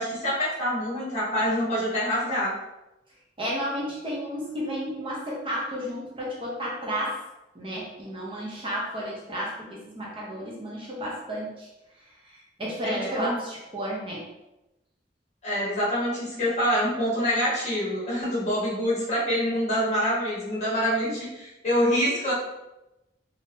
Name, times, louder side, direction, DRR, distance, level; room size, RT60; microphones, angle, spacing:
voice 1, 0.0-2.6 12.8-13.4 15.4-22.3, equal, 40° left, -7 dB, 1.5 m, -26 dB
voice 2, 3.4-7.2 7.5-11.7 12.6-14.2, equal, 30° right, -4 dB, 0.7 m, -32 dB
3.5 x 2.6 x 2.7 m, 0.96 s
head